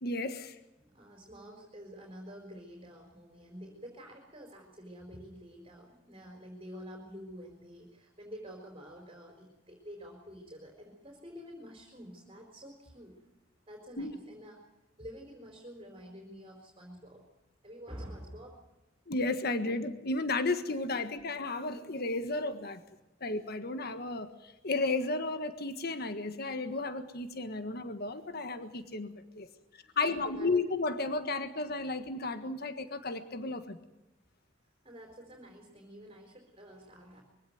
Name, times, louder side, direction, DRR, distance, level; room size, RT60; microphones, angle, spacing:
voice 1, 0.0-0.6 14.0-14.1 19.1-22.8 23.2-29.5 29.9-33.8, left 3 dB, 55° left, 9 dB, 1.6 m, -33 dB
voice 2, 0.8-13.2 13.7-14.6 15.0-17.2 17.6-18.6 29.8-30.5 34.8-37.2, equal, 30° right, 1 dB, 4.3 m, -48 dB
23.5 x 16.5 x 9.3 m, 0.93 s
head